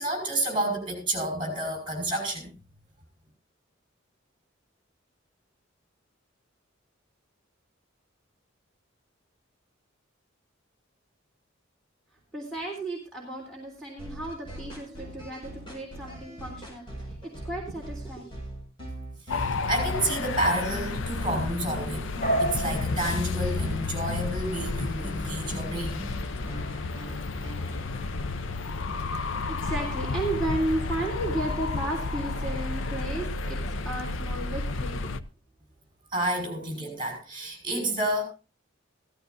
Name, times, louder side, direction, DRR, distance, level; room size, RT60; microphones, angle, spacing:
voice 1, 0.0-2.5 19.3-22.1 22.4-26.0 36.1-38.2, right 1 dB, 25° right, 2 dB, 5.4 m, -30 dB
voice 2, 12.3-18.3 29.5-35.0, right 1 dB, 5° left, -2 dB, 3.5 m, -34 dB
sound 1, 14.0-27.8, equal, 25° left, 5.6 m, -40 dB
sound 2, 19.3-35.2, left 3 dB, 70° left, 0.6 m, -32 dB
sound 3, 22.2-35.2, right 1 dB, 45° left, 3.6 m, -38 dB
16.0 x 14.5 x 2.6 m, 0.32 s
head